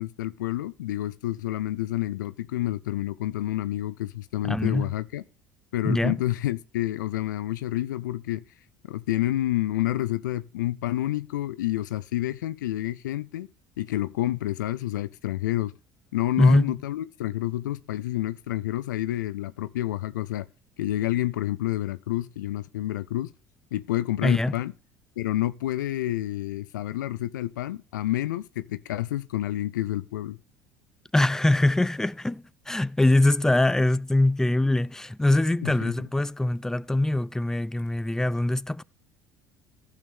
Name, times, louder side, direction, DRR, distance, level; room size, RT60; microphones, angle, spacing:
voice 1, 0.0-5.2 5.7-8.4 8.9-13.5 13.8-15.7 16.1-20.5 20.8-23.3 23.7-24.7 25.2-30.4 35.6-35.9, left 14 dB, 75° left, 0.4 m, -29 dB
voice 2, 4.4-4.9 5.8-6.2 16.4-16.7 24.2-24.5 31.1-38.8, left 1 dB, 5° left, 0.4 m, -23 dB
15.0 x 6.5 x 3.4 m
hypercardioid pair, 65°, 10 cm